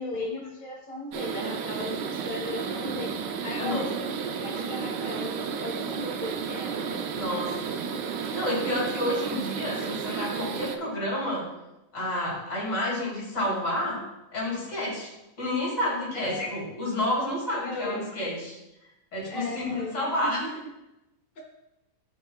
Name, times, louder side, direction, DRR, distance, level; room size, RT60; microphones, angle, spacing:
voice 1, 0.0-6.9 16.1-16.5 17.6-18.1 19.3-20.5, left 2 dB, 35° left, -1 dB, 1.5 m, -37 dB
sound 1, 1.1-10.8, right 6 dB, 80° right, 1.3 m, -32 dB
voice 2, 3.6-3.9 7.1-7.8 8.2-11.4 11.9-14.0 14.3-15.1 15.4-18.6 19.1-20.4, left 1 dB, 85° left, -4 dB, 3.2 m, -30 dB
12.5 x 5.5 x 2.3 m, 0.94 s
omnidirectional pair, 1.8 m